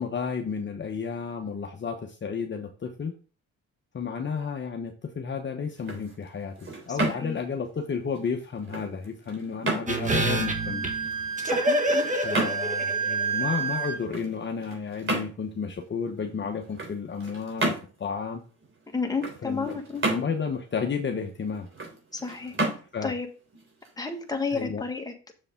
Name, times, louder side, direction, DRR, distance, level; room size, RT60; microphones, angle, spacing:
voice 1, 0.0-3.1 3.9-10.9 12.2-18.4 19.4-19.8 20.1-21.7 22.9-23.1 24.5-24.8, left 6 dB, 40° left, 3 dB, 1.0 m, -32 dB
sound 1, 5.6-24.5, right 2 dB, 40° right, 3.6 m, -34 dB
voice 2, 6.9-7.4 11.4-12.1 18.9-20.0 22.1-22.5 23.0-23.3 24.0-25.1, left 4 dB, 10° left, 3 dB, 1.7 m, -31 dB
sound 2, 9.9-13.4 13.7-13.8, right 1 dB, 25° right, 1.5 m, -27 dB
Wind instrument woodwind instrument, 10.0-14.0, right 6 dB, 85° right, 2.7 m, -30 dB
6.9 x 6.8 x 3.7 m, 0.37 s
cardioid pair, 90°, 30 cm